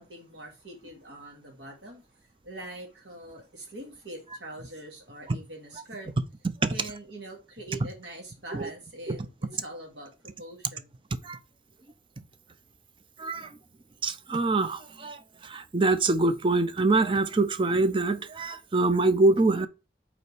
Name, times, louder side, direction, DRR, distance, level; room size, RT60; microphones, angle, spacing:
voice 1, 0.0-2.0 2.4-6.1 6.7-10.9, right 1 dB, 80° right, 2.1 m, -43 dB
voice 2, 13.2-13.5 14.0-19.7, right 3 dB, 30° right, 0.5 m, -25 dB
5.4 x 4.3 x 4.7 m
head